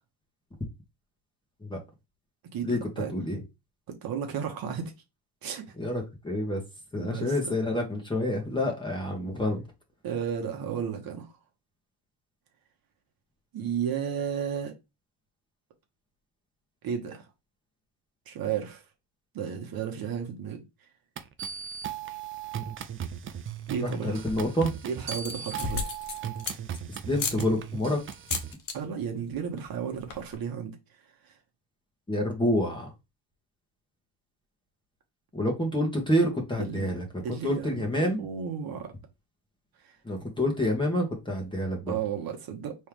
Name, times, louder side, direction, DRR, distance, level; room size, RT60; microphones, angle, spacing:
voice 1, 2.5-3.1 3.9-4.9 5.4-5.6 7.0-7.4 10.0-11.4 13.5-14.7 16.8-17.3 18.3-18.8 19.3-20.6 23.7-24.2 24.8-25.9 28.7-30.8 31.2-31.3 36.6-36.9 37.2-38.9 39.8-39.9 41.9-42.7, right 8 dB, 45° right, 1.2 m, -33 dB
voice 2, 5.8-6.6 6.9-9.6 23.8-24.7 26.9-28.0 32.1-32.9 35.3-38.3 40.0-42.0, left 1 dB, 10° left, 1.4 m, -28 dB
sound 1, 21.2-28.5, right 8 dB, 30° right, 0.4 m, -37 dB
sound 2, 24.0-24.5 25.0-26.8 27.2-27.4 28.1-28.8 29.1-29.4 29.6-29.7 29.9-30.4, left 5 dB, 40° left, 1.0 m, -34 dB
4.5 x 3.2 x 3.4 m
cardioid pair, 140°, 49 cm